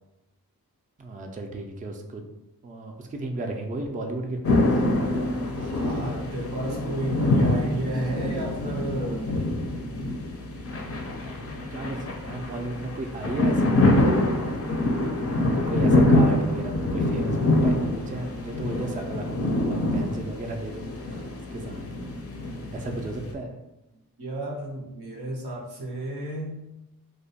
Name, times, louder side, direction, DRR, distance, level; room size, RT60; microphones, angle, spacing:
voice 1, 1.0-2.2 2.6-4.6 11.2-14.3 15.0-21.8 22.4-23.6, right 2 dB, 25° right, 3 dB, 0.3 m, -35 dB
sound 1, 4.4-23.3, left 1 dB, 40° left, 0.4 m, -25 dB
voice 2, 5.5-9.6 11.4-11.5 24.2-26.6, right 1 dB, 90° right, -2 dB, 0.7 m, -32 dB
2.3 x 2.1 x 2.7 m, 0.93 s
cardioid pair, 40°, 37 cm